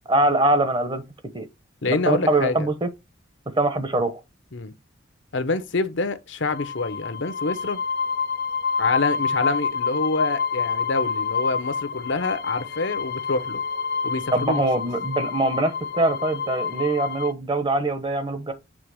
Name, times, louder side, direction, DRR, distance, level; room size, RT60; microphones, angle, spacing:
voice 1, 0.1-1.0 1.3-1.5 1.9-2.9 3.6-4.2 14.3-18.5, right 2 dB, 25° right, 1.0 m, -23 dB
voice 2, 1.8-2.7 4.5-4.7 5.3-7.8 8.8-13.6 14.0-14.9, left 3 dB, 70° left, 0.9 m, -26 dB
sound 1, 6.4-17.3, left 5 dB, 55° left, 0.5 m, -28 dB
7.6 x 3.6 x 4.8 m
head